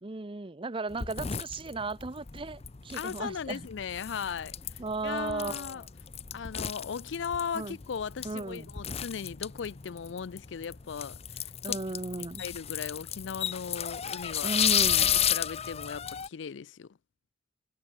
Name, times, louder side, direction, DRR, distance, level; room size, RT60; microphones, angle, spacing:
voice 1, 0.0-3.7 4.8-5.9 7.5-7.8 8.2-8.7 11.6-12.4 14.4-15.1, right 3 dB, 30° right, 0.8 m, -35 dB
sound 1, 0.9-16.3, left 9 dB, 35° left, 0.6 m, -33 dB
voice 2, 2.9-4.5 5.0-5.8 6.3-11.8 12.4-14.5 15.0-17.0, left 6 dB, 75° left, 0.4 m, -37 dB
head